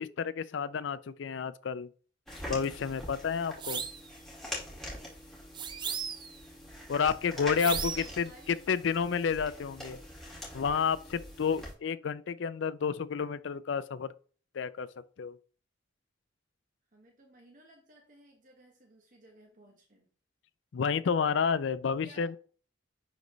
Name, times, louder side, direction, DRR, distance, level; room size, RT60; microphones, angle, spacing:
voice 1, 0.0-1.9 2.5-3.9 6.9-8.3 8.7-10.0 10.5-14.1 14.5-14.9 15.2-15.4 20.7-22.4, left 6 dB, 60° left, 0.4 m, -30 dB
sound 1, 2.3-11.7, left 1 dB, ahead, 2.2 m, -44 dB
sound 2, 3.6-4.1 5.5-6.4 7.6-8.2, right 6 dB, 25° right, 0.4 m, -35 dB
voice 2, 5.9-6.3 7.9-8.6 16.9-20.1 22.0-22.3, right 1 dB, 40° right, 1.1 m, -58 dB
10.5 x 3.9 x 3.1 m
head